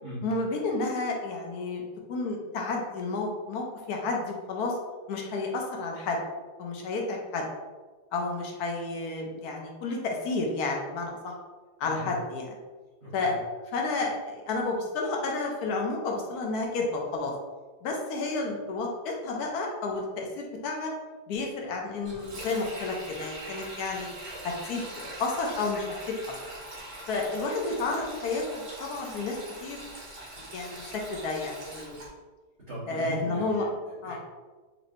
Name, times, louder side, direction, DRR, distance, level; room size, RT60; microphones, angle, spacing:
voice 1, 0.2-1.8 2.1-4.7 5.1-6.2 6.6-7.4 8.1-11.3 11.8-12.4 13.1-13.3 13.7-17.3 17.8-20.9 21.3-24.1 24.4-26.2 27.1-29.8 30.5-32.0 32.9-33.7 34.0-34.2, left 3 dB, 75° left, 0 dB, 1.1 m, -31 dB
voice 2, 11.8-12.1 13.0-13.4 32.7-34.2, equal, 35° right, -13 dB, 1.4 m, -39 dB
Sink (filling or washing), 22.0-32.1, right 1 dB, 70° right, 1.9 m, -42 dB
4.2 x 3.0 x 2.6 m, 1.3 s
omnidirectional pair, 1.8 m